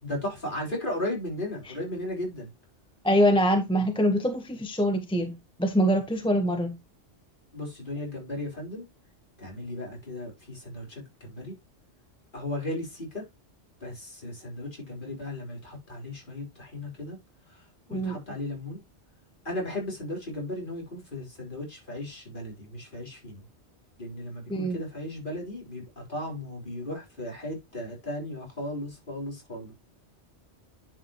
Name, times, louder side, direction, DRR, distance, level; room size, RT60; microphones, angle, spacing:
voice 1, 0.0-2.5 7.5-8.9 9.4-11.5 12.3-13.2 13.8-17.2 17.9-18.8 19.5-23.4 24.0-29.7, left 1 dB, 45° left, 3.9 m, -36 dB
voice 2, 3.0-6.8 17.9-18.2 24.5-24.8, equal, 5° left, 0.9 m, -24 dB
10.5 x 4.9 x 2.9 m
omnidirectional pair, 1.2 m